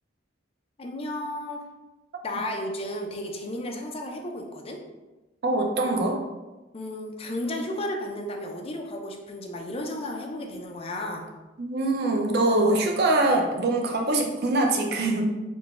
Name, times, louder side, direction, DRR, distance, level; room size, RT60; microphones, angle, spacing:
voice 1, 0.8-1.6 2.2-4.8 6.7-11.2, left 1 dB, 30° left, 1 dB, 0.5 m, -33 dB
voice 2, 5.4-6.2 11.6-15.3, right 2 dB, 55° right, 2 dB, 0.6 m, -23 dB
3.8 x 2.2 x 3.5 m, 1.1 s
head